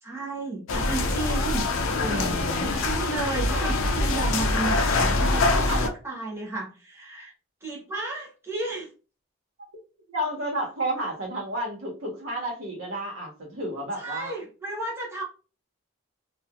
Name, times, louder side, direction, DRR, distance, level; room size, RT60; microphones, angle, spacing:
voice 1, 0.0-1.8 2.1-7.3 7.6-8.9 14.0-15.2, right 2 dB, 10° right, -4 dB, 0.7 m, -33 dB
sound 1, 0.7-5.9, left 2 dB, 70° left, 0.5 m, -24 dB
voice 2, 1.9-2.7 5.3-5.8 10.1-14.4, right 1 dB, 80° right, 0 dB, 1.1 m, -31 dB
2.9 x 2.4 x 2.4 m, 0.34 s
head